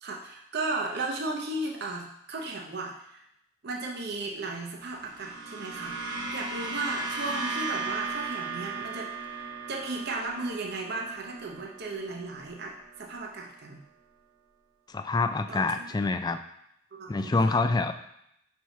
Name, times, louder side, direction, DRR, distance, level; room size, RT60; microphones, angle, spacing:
voice 1, 0.0-3.2 3.6-13.8 15.5-16.0 16.9-17.6, right 2 dB, 55° right, 0 dB, 0.7 m, -35 dB
sound 1, 4.9-13.3, right 4 dB, 90° right, 1.0 m, -37 dB
voice 2, 14.9-16.4 17.1-17.9, left 3 dB, 20° left, 9 dB, 0.3 m, -26 dB
4.6 x 4.3 x 5.7 m, 0.77 s
head